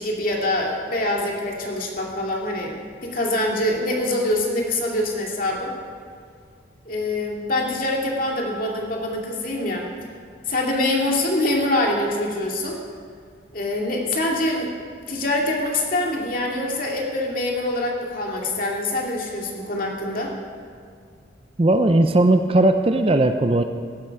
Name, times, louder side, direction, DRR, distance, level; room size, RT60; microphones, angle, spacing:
voice 1, 0.0-5.7 6.9-9.9 10.5-12.8 13.5-14.7 15.1-20.3, left 1 dB, 45° left, -1 dB, 2.4 m, -24 dB
voice 2, 21.6-23.6, right 2 dB, 30° right, 8 dB, 0.5 m, -17 dB
16.5 x 12.0 x 4.7 m, 2.1 s
head